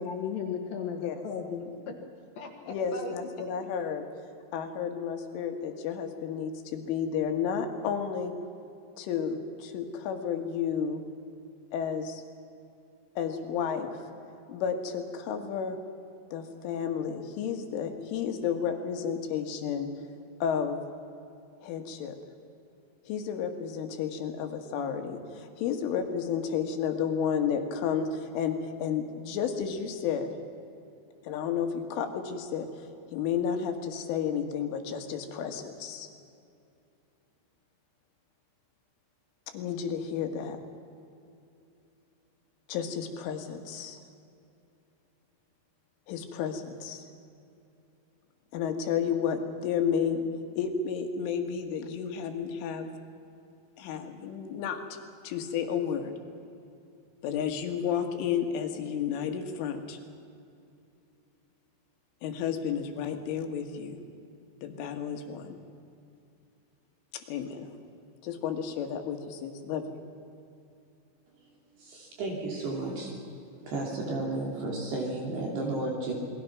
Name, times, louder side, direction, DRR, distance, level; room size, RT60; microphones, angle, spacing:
voice 1, 0.0-1.9 2.4-3.1 3.4-3.5, left 6 dB, 60° left, 3 dB, 3.0 m, -36 dB
voice 2, 2.7-4.0 4.5-8.3 9.0-11.0 11.7-12.2 13.2-14.0 14.5-15.8 16.3-19.9 20.4-20.9 21.6-22.2 23.1-30.3 31.2-36.1 39.5-40.6 42.7-44.0 46.1-47.1 48.5-50.2 50.6-52.9 53.8-55.0 55.2-56.1 57.2-60.0 62.2-64.0 64.6-65.6 67.3-67.7 68.2-70.0, left 7 dB, 80° left, 5 dB, 4.3 m, -32 dB
voice 3, 71.8-73.1 73.6-76.1, right 2 dB, 60° right, -1 dB, 4.7 m, -33 dB
28.5 x 20.5 x 6.0 m, 2.6 s
omnidirectional pair, 5.6 m